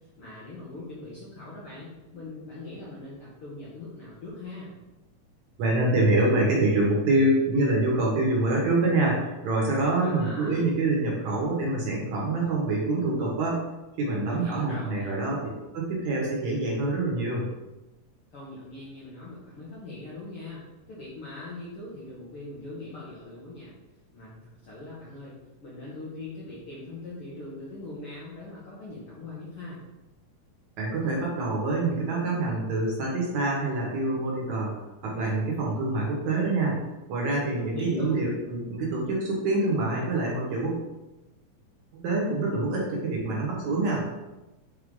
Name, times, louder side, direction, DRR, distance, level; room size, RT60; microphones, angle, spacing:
voice 1, 0.2-4.7 9.9-10.6 14.2-15.2 18.3-20.6 20.9-23.7 24.1-25.3 25.6-29.8 37.5-38.3, left 2 dB, 60° left, -7 dB, 1.5 m, -41 dB
voice 2, 5.6-13.6 14.0-15.4 15.7-17.4 30.8-34.7 35.0-36.8 37.1-40.8 41.9-44.0, right 2 dB, 65° right, -3 dB, 2.4 m, -26 dB
6.2 x 4.4 x 3.7 m, 1.0 s
omnidirectional pair, 3.9 m